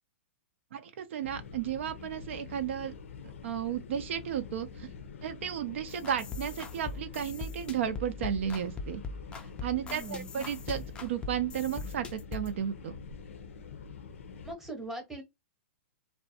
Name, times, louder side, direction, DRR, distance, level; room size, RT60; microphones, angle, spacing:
voice 1, 0.7-2.9 3.2-4.9 5.2-9.0 9.6-13.0, right 9 dB, 65° right, 0.4 m, -34 dB
sound 1, 1.2-14.5, left 5 dB, 80° left, 0.5 m, -46 dB
sound 2, 5.9-12.6, left 4 dB, 15° left, 0.4 m, -41 dB
voice 2, 9.8-10.3 14.4-15.2, right 2 dB, 5° right, 0.9 m, -41 dB
2.5 x 2.1 x 2.6 m
hypercardioid pair, 135°, 7 cm